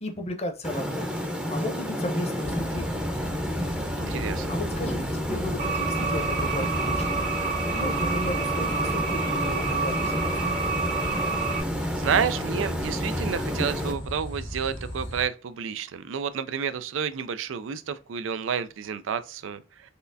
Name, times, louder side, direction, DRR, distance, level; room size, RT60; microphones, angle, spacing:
voice 1, 0.0-1.1 1.5-3.0 4.5-7.2 7.7-10.6, left 1 dB, 35° left, 0.8 m, -34 dB
sound 1, 0.6-13.9, equal, 5° right, 0.7 m, -31 dB
sound 2, 2.4-15.2, equal, 85° left, 1.8 m, -35 dB
voice 2, 4.0-4.5 12.0-19.9, right 7 dB, 85° right, 0.4 m, -30 dB
sound 3, 5.6-11.6, right 4 dB, 45° right, 1.0 m, -29 dB
4.2 x 3.3 x 2.6 m
head